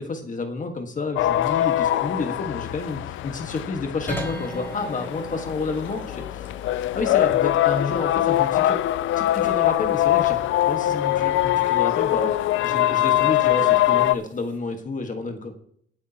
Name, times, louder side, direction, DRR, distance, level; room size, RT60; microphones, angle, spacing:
voice 1, 0.0-6.5 6.9-8.8 9.2-12.4 12.6-15.5, left 3 dB, 40° left, 5 dB, 1.6 m, -30 dB
sound 1, 1.2-14.1, left 14 dB, 80° left, 0.4 m, -23 dB
sound 2, 4.1-14.6, right 1 dB, 10° left, 4.2 m, -42 dB
20.5 x 8.5 x 2.9 m, 0.67 s
cardioid pair, 90°, 20 cm